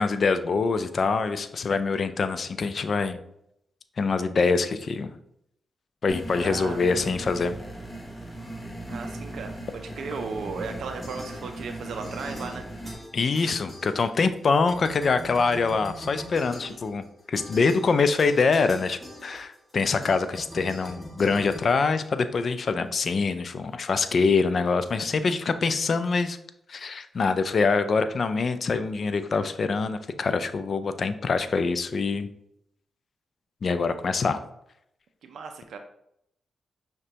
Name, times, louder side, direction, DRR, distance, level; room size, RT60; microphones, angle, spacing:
voice 1, 0.0-3.2 4.0-5.1 6.0-7.6 13.1-26.4 26.7-32.3 33.6-34.4, left 4 dB, 60° left, 10 dB, 0.3 m, -24 dB
sound 1, 6.1-12.9, right 1 dB, 20° left, 0.8 m, -38 dB
voice 2, 6.4-6.8 8.9-12.7 16.7-16.8 35.2-35.8, right 4 dB, 80° right, 5 dB, 0.3 m, -36 dB
sound 2, 11.0-11.8 12.0-14.4 14.7-22.5, equal, ahead, 1.3 m, -43 dB
5.9 x 2.2 x 2.8 m, 0.75 s
cardioid pair, 55°, 0 cm